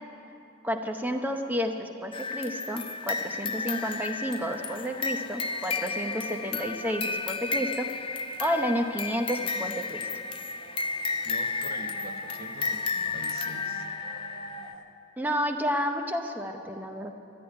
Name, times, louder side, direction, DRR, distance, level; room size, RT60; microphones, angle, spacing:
voice 1, 0.6-10.1 15.2-17.1, equal, 10° right, 5 dB, 0.8 m, -31 dB
sound 1, 2.1-14.7, left 4 dB, 25° left, 0.4 m, -33 dB
sound 2, 3.5-14.8, right 3 dB, 85° right, 1.2 m, -47 dB
voice 2, 11.2-13.9, right 2 dB, 45° right, 5 dB, 1.0 m, -45 dB
13.0 x 10.5 x 9.9 m, 2.8 s
head